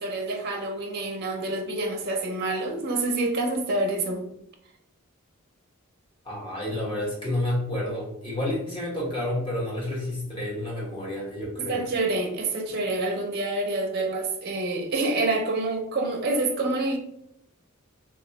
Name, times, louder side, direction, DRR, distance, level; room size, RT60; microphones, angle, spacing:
voice 1, 0.0-4.2 11.6-17.0, right 2 dB, 45° right, 3 dB, 0.5 m, -27 dB
voice 2, 6.2-11.8, left 1 dB, 25° left, -5 dB, 1.1 m, -30 dB
2.9 x 2.3 x 3.9 m, 0.78 s
head